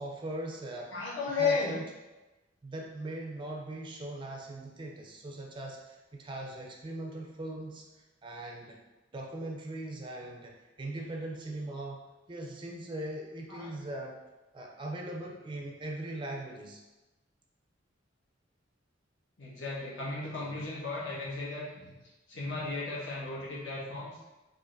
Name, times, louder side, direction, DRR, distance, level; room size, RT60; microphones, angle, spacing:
voice 1, 0.0-0.9 1.4-1.8 2.6-7.9 8.2-8.8 9.1-12.0 12.3-14.2 14.5-16.8 20.2-20.6, right 1 dB, 25° right, 0 dB, 0.4 m, -40 dB
voice 2, 0.9-1.7 13.5-13.7 19.4-21.9 22.3-24.2, left 4 dB, 70° left, -6 dB, 1.1 m, -34 dB
4.8 x 2.6 x 2.5 m, 1.1 s
head